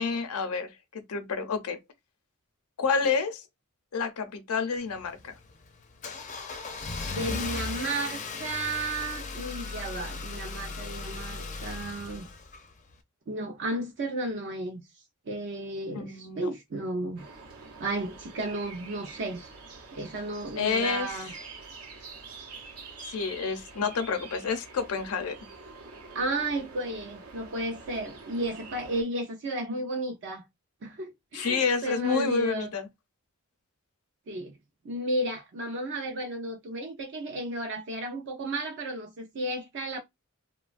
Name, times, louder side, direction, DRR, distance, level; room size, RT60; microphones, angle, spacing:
voice 1, 0.0-1.8 2.8-3.4 3.9-5.3 15.9-16.5 20.6-21.3 23.0-25.4 31.3-32.9, left 5 dB, 85° left, 0.5 m, -29 dB
Car / Engine starting, 4.8-12.9, left 3 dB, 35° left, 0.4 m, -37 dB
voice 2, 7.1-12.3 13.3-14.8 15.3-17.3 17.8-19.4 19.9-21.3 26.1-30.4 30.8-32.7 34.3-34.5 34.8-40.0, right 1 dB, 55° right, 0.5 m, -33 dB
sound 1, 17.2-29.0, right 4 dB, 90° right, 0.8 m, -46 dB
3.0 x 2.2 x 2.4 m
head